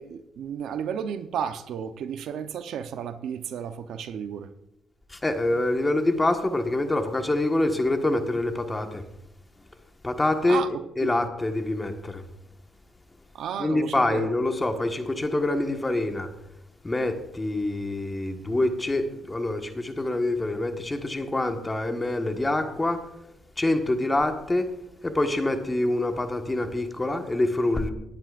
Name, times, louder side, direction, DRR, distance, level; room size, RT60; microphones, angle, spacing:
voice 1, 0.0-4.5 10.5-10.7 11.0-11.3 13.3-14.3, right 8 dB, 75° right, 10 dB, 0.8 m, -33 dB
voice 2, 5.1-9.0 10.0-10.6 11.0-12.2 13.6-16.3 16.8-23.1 23.6-24.7 25.0-27.9, left 2 dB, 20° left, 6 dB, 1.5 m, -26 dB
19.0 x 10.5 x 2.5 m, 0.87 s
cardioid pair, 90°, 0 cm